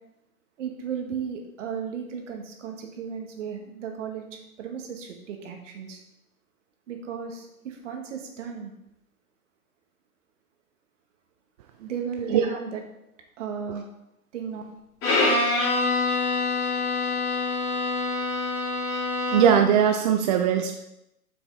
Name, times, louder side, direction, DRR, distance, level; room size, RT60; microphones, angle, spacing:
voice 1, 0.6-6.0 6.9-8.7 11.8-12.8 13.4-13.9 14.3-14.6, right 7 dB, 55° right, 3 dB, 1.8 m, -35 dB
Bowed string instrument, 15.0-19.7, left 3 dB, 30° left, 3.2 m, -25 dB
voice 2, 19.3-20.7, right 8 dB, 30° right, 4 dB, 0.5 m, -20 dB
8.1 x 6.1 x 4.2 m, 0.86 s
hypercardioid pair, 120°, 44 cm